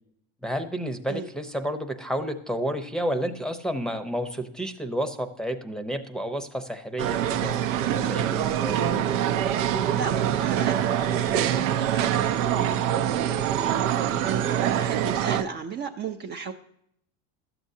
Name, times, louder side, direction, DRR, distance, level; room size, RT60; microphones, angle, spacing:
voice 1, 0.4-8.8, equal, ahead, 8 dB, 0.7 m, -31 dB
sound 1, 7.0-15.4, right 10 dB, 85° right, 0.7 m, -25 dB
voice 2, 9.9-16.5, right 6 dB, 30° right, 4 dB, 0.5 m, -36 dB
12.5 x 7.8 x 2.7 m, 0.72 s
supercardioid pair, 110°, 37 cm